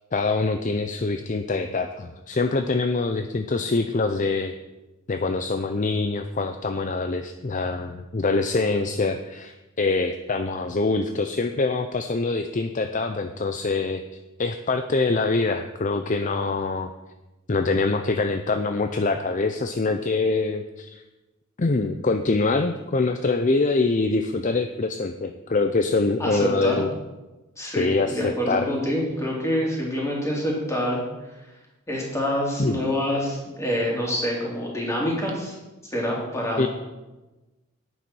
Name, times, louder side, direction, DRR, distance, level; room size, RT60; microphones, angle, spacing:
voice 1, 0.1-4.5 5.1-14.0 14.4-16.9 17.5-21.0 21.6-26.9 27.8-28.7 32.6-32.8 36.6-36.7, left 3 dB, 35° left, 7 dB, 0.6 m, -24 dB
voice 2, 26.2-26.8 27.6-31.0 31.9-35.6 35.9-36.6, equal, 15° left, -3 dB, 3.4 m, -26 dB
10.5 x 9.2 x 6.2 m, 1.1 s
head